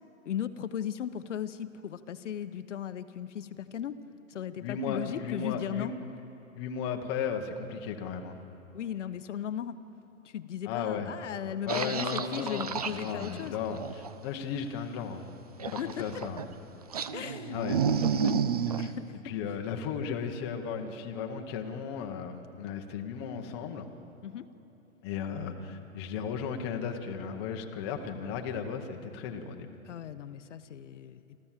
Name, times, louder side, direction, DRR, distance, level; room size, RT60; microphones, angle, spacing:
voice 1, 0.2-4.0 4.3-5.9 8.7-9.8 10.2-13.6 15.8-16.2 17.1-19.2 24.2-24.5 29.8-31.2, left 9 dB, 60° left, 11 dB, 0.9 m, -37 dB
voice 2, 4.6-5.9 6.6-8.4 10.6-11.1 11.6-15.2 15.8-16.4 17.5-18.1 18.7-18.8 19.2-23.9 25.0-29.7, left 6 dB, 20° left, 4 dB, 0.9 m, -35 dB
sound 1, 11.7-14.1 15.6-16.5 16.9-18.9, right 6 dB, 30° right, 0.4 m, -31 dB
26.5 x 14.0 x 7.4 m, 3.0 s
hypercardioid pair, 165°, 40 cm